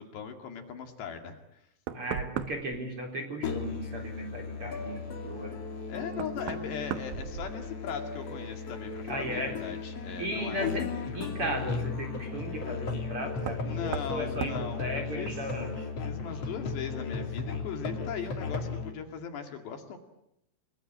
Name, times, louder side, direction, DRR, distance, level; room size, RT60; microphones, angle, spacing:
voice 1, 0.0-1.6 5.9-10.7 13.6-15.4 16.1-20.0, left 7 dB, 60° left, 5 dB, 4.1 m, -39 dB
Knock, 1.4-1.5 1.9-2.8 5.3-5.4 6.1-8.0 8.3-8.9 10.6-10.7 13.4-13.7 13.9-14.2 14.4-14.6, right 10 dB, 75° right, 2.2 m, -37 dB
voice 2, 1.9-5.5 9.1-9.5 10.2-10.9 11.1-15.8, right 1 dB, 30° right, 3 dB, 4.3 m, -36 dB
Musical instrument, 3.4-18.9, left 5 dB, 40° left, 2.9 m, -36 dB
30.0 x 20.0 x 9.8 m, 0.80 s
omnidirectional pair, 5.9 m